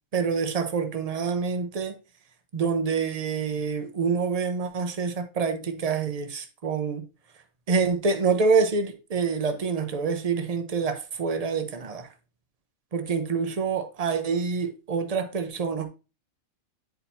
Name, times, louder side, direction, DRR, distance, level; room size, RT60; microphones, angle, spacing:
voice 1, 0.1-2.0 2.5-7.0 7.7-12.1 12.9-15.9, right 5 dB, 40° right, 0.6 m, -26 dB
9.1 x 4.2 x 2.7 m
omnidirectional pair, 1.5 m